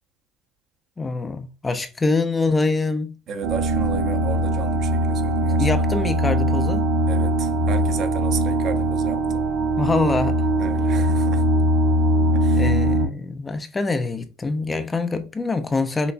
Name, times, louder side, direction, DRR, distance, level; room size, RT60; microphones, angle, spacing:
voice 1, 1.0-3.2 5.6-6.9 9.8-10.5 12.5-16.1, left 3 dB, 20° left, 0.5 m, -24 dB
voice 2, 3.3-5.7 7.1-9.4 10.6-11.7 12.3-12.7, right 6 dB, 50° right, 0.7 m, -33 dB
sound 1, 3.4-13.1, right 1 dB, 80° right, 1.5 m, -21 dB
5.9 x 2.4 x 2.2 m
supercardioid pair, 95°, 0 cm